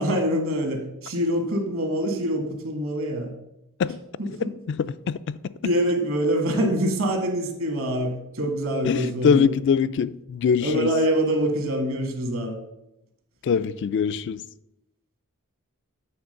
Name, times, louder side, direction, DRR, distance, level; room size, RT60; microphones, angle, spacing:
voice 1, 0.0-3.3 4.2-4.5 5.6-9.5 10.6-12.6, equal, 65° right, 1.5 m, -25 dB
voice 2, 4.7-5.4 8.8-10.9 13.4-14.4, left 6 dB, 55° left, 0.3 m, -23 dB
8.6 x 3.6 x 6.5 m
head